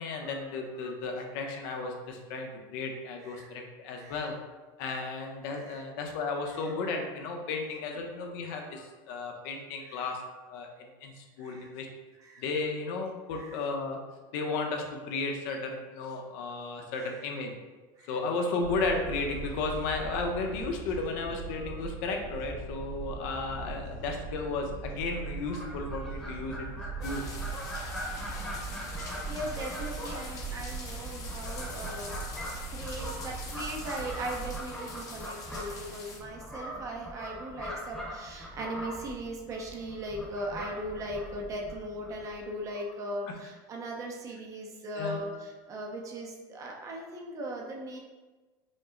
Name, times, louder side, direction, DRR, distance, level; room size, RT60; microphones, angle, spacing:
voice 1, 0.0-4.3 4.8-10.2 10.5-11.9 12.4-14.0 14.3-17.5 18.1-27.2 45.0-45.4, left 3 dB, 70° left, 3 dB, 0.7 m, -34 dB
voice 2, 3.2-3.5 3.9-4.3 5.5-5.8 6.5-6.7 9.8-10.1 11.4-11.7 12.2-12.4 13.3-13.6 16.9-17.2 18.0-18.2 29.0-32.2 32.7-48.0, right 1 dB, 30° right, 0 dB, 0.7 m, -39 dB
sound 1, 18.6-34.6, right 4 dB, 70° right, 1.0 m, -40 dB
Fowl, 25.2-42.5, equal, 5° left, 1.0 m, -42 dB
sound 2, 27.0-36.2, left 3 dB, 30° left, 0.8 m, -44 dB
5.2 x 2.0 x 3.7 m, 1.2 s
supercardioid pair, 145°, 11 cm